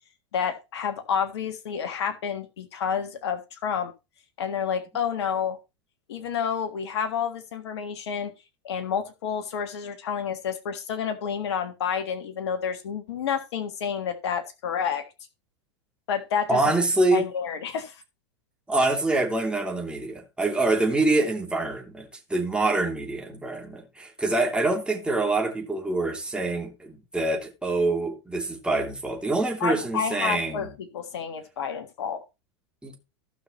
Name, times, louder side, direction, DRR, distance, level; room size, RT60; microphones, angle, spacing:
voice 1, 0.3-3.9 4.4-5.6 6.1-8.3 8.6-15.1 16.1-16.6 17.1-18.0 29.6-32.2, left 7 dB, 70° left, 1.6 m, -29 dB
voice 2, 16.5-17.3 18.7-30.7 32.8-33.0, right 2 dB, 5° right, 2.9 m, -25 dB
16.0 x 5.8 x 3.0 m
hypercardioid pair, 100°, 14 cm